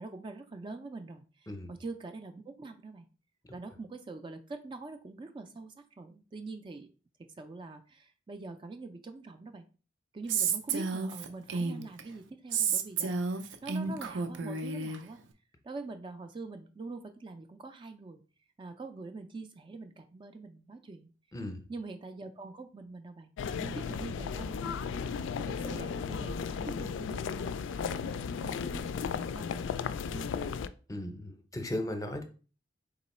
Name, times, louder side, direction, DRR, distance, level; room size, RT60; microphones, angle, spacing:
voice 1, 0.0-3.1 3.5-6.9 7.2-9.6 10.1-15.2 15.6-18.2 18.6-21.1 21.7-29.7 30.1-30.5, right 3 dB, 25° right, 7 dB, 0.3 m, -44 dB
Female speech woman speaking, 10.3-12.0 12.5-15.0, right 5 dB, 85° right, 0.5 m, -31 dB
voice 2, 21.3-21.7 30.9-32.3, left 1 dB, 20° left, 5 dB, 0.6 m, -36 dB
sound 1, 23.4-30.7, left 6 dB, 85° left, 0.3 m, -35 dB
3.8 x 3.0 x 4.2 m, 0.36 s
head